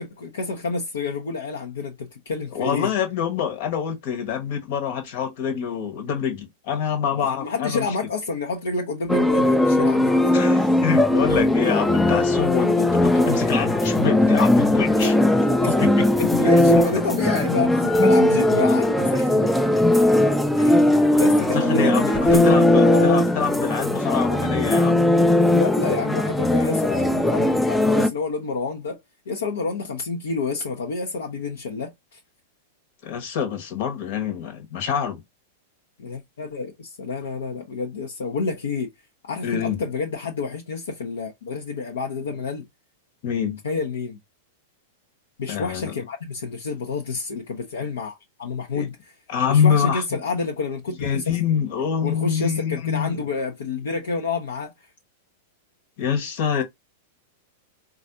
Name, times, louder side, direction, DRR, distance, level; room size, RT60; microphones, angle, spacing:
voice 1, 0.0-2.9 7.1-10.3 15.0-15.1 16.2-19.5 20.6-23.3 25.5-29.0 29.3-32.2 36.0-38.9 39.2-42.7 43.6-44.2 45.4-49.2 49.5-51.4 52.0-54.9, left 4 dB, 75° left, 0.6 m, -29 dB
voice 2, 2.5-7.8 10.3-15.1 15.6-16.1 21.5-25.0 33.0-35.2 39.4-39.8 43.2-43.6 45.5-45.9 48.7-48.9 49.3-50.0 51.0-53.2 56.0-56.6, left 7 dB, 55° left, 1.1 m, -25 dB
sound 1, 9.1-28.1, left 1 dB, 5° left, 0.4 m, -19 dB
4.0 x 2.4 x 2.6 m
figure-of-eight pair, 100°, 0 cm